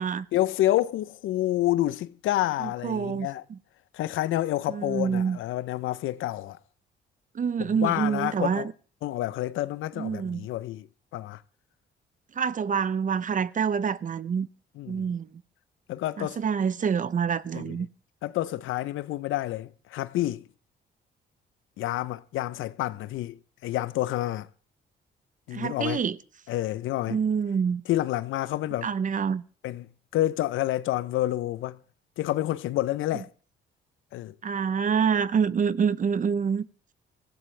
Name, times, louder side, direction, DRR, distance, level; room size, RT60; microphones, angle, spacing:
voice 1, 0.3-3.4 3.9-6.6 7.8-8.7 9.0-10.9 11.1-11.4 14.8-15.0 15.9-16.4 17.5-17.6 18.2-20.4 21.8-24.5 25.5-26.0 26.5-27.2 27.9-28.9 29.6-29.9 30.1-31.8 32.2-33.3 34.1-34.3, left 15 dB, 85° left, 0.7 m, -28 dB
voice 2, 2.6-3.6 4.7-5.4 7.3-8.7 10.0-10.5 12.3-14.5 14.9-15.4 16.2-17.9 25.5-26.2 27.1-27.8 28.8-29.4 34.4-36.7, right 6 dB, 40° right, 0.8 m, -27 dB
24.0 x 16.0 x 3.3 m
cardioid pair, 90°, 20 cm